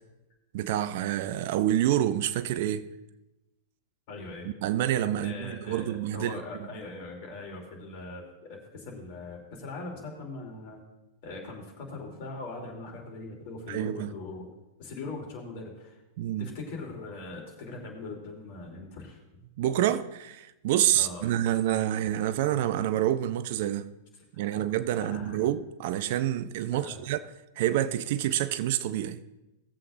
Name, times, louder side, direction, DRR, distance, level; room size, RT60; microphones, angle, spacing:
voice 1, 0.5-2.9 4.4-6.3 13.7-14.1 16.2-16.5 19.6-23.9 24.4-27.2 27.6-29.2, right 12 dB, 55° right, 0.5 m, -27 dB
voice 2, 4.1-4.5 5.2-10.8 11.2-14.5 14.8-16.0 16.4-19.2 20.9-21.3 24.4-24.6 25.0-25.4 26.8-27.0, left 3 dB, 50° left, 3.1 m, -41 dB
17.5 x 7.8 x 2.6 m
figure-of-eight pair, 95°, 0 cm